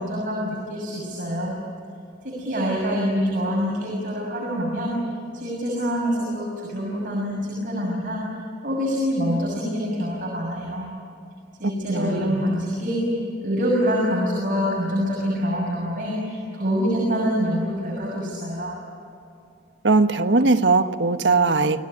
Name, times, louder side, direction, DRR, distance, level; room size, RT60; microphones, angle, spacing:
voice 1, 0.0-1.6 2.2-5.0 5.3-8.2 8.6-10.9 11.6-13.1 13.4-18.7, equal, 50° right, -3 dB, 6.8 m, -25 dB
voice 2, 19.8-21.8, right 3 dB, 85° right, 8 dB, 1.3 m, -19 dB
29.5 x 18.5 x 9.9 m, 2.5 s
head